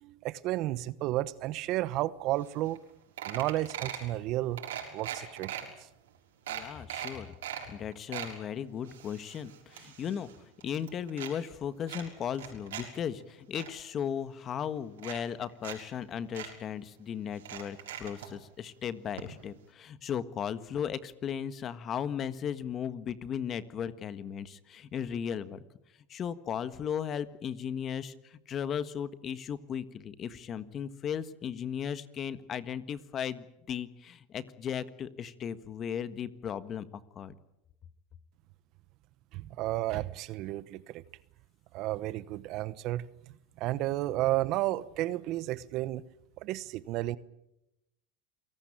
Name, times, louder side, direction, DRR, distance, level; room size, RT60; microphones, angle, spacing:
voice 1, 0.0-2.8 3.2-4.6 4.9-5.7 39.3-41.0 41.7-43.1 43.6-46.0 46.4-47.2, right 16 dB, 50° right, 1.1 m, -32 dB
sound 1, 2.5-2.6 2.8-2.9 3.2-4.1 4.6-5.6 6.1-6.2 6.5-7.6 7.9-8.3 8.8-10.4 10.6-11.3 11.9-12.8 13.2-13.7 14.5-14.6 15.0-15.8 16.0-16.1 16.3-16.5 17.4-18.3 19.2-19.3 19.6-19.7, right 11 dB, 85° right, 6.3 m, -40 dB
voice 2, 6.5-7.3 7.7-10.3 10.6-25.6 26.1-36.9 37.2-37.3, left 8 dB, 35° left, 1.6 m, -36 dB
28.0 x 18.0 x 8.9 m
supercardioid pair, 115°, 0 cm